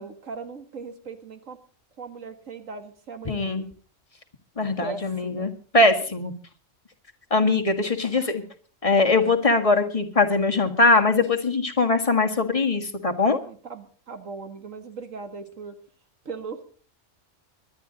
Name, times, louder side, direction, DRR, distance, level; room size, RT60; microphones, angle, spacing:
voice 1, 0.0-1.6 2.0-3.7 4.8-5.5 8.1-8.4 13.3-15.7 16.3-16.6, right 4 dB, 80° right, 8 dB, 2.1 m, -38 dB
voice 2, 3.2-3.6 4.6-6.3 7.3-8.4 8.8-13.4, left 3 dB, 25° left, 4 dB, 1.7 m, -21 dB
23.5 x 10.5 x 3.9 m, 0.42 s
omnidirectional pair, 1.3 m